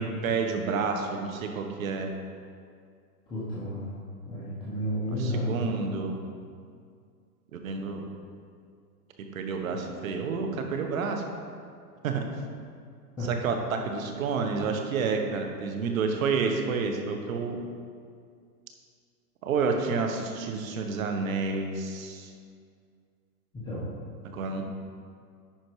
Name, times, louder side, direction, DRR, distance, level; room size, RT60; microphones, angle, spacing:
voice 1, 0.0-2.1 5.2-6.2 7.5-8.0 9.3-11.2 12.0-12.2 13.2-17.6 19.4-22.3 24.2-24.6, right 4 dB, 55° right, 4 dB, 1.2 m, -29 dB
voice 2, 3.3-4.0 4.2-5.8 13.2-13.3 23.5-23.8, equal, 10° left, -11 dB, 1.1 m, -32 dB
10.5 x 4.6 x 4.7 m, 2.2 s
hypercardioid pair, 160°, 50 cm